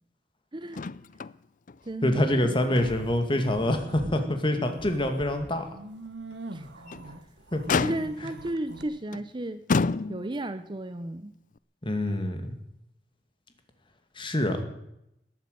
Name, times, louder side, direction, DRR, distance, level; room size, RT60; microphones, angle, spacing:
voice 1, 0.5-0.9 1.8-2.6 6.5-6.7 7.8-9.6 10.1-11.3, right 1 dB, 25° right, 11 dB, 0.7 m, -34 dB
Motor vehicle (road), 0.7-1.4 1.7-1.8 2.3-3.2 3.7-3.8 4.3-4.4 6.7-7.1 7.7-8.4 9.1-9.3 9.7-10.5 11.6-11.7, left 4 dB, 50° left, 0.5 m, -29 dB
voice 2, 2.0-5.7 7.5-7.6 11.8-12.5 14.2-14.6, left 1 dB, 30° left, 6 dB, 2.3 m, -26 dB
sound 1, 2.6-4.2 4.6-8.8, right 2 dB, 80° right, 1.4 m, -42 dB
19.5 x 9.1 x 8.1 m, 0.81 s
head